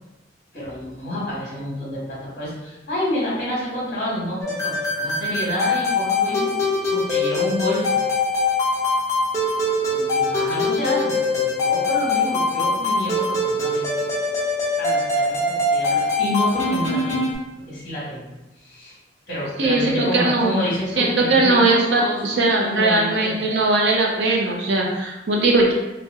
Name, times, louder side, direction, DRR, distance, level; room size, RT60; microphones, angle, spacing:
voice 1, 0.5-6.5 6.9-8.0 9.9-13.9 14.8-17.2 17.7-18.3 18.6-19.0 19.3-23.4, left 1 dB, 50° left, -7 dB, 1.1 m, -28 dB
sound 1, 4.4-17.3, left 2 dB, 15° left, 0.8 m, -22 dB
voice 2, 19.6-20.5 21.0-25.7, right 2 dB, 70° right, -2 dB, 0.6 m, -19 dB
2.8 x 2.0 x 3.4 m, 1.0 s
head